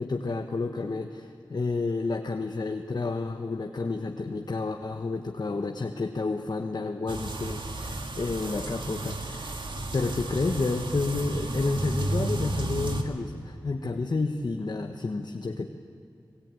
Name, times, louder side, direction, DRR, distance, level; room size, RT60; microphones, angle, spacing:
voice 1, 0.0-15.7, left 3 dB, 55° left, 4 dB, 1.2 m, -30 dB
sound 1, 7.1-13.0, right 2 dB, 70° right, 2.0 m, -32 dB
25.5 x 17.5 x 9.1 m, 2.4 s
cardioid pair, 40°, 8 cm